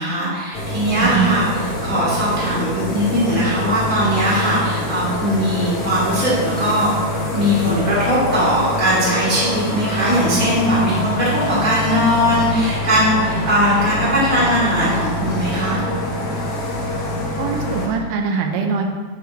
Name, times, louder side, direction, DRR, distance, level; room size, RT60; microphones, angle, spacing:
voice 1, 0.0-6.9 7.3-15.8, equal, 5° left, -8 dB, 1.9 m, -19 dB
sound 1, 0.5-17.9, left 1 dB, 90° left, 0.8 m, -25 dB
voice 2, 1.0-1.4 17.4-18.8, right 6 dB, 80° right, 3 dB, 2.3 m, -22 dB
10.5 x 5.9 x 3.2 m, 1.5 s
omnidirectional pair, 3.7 m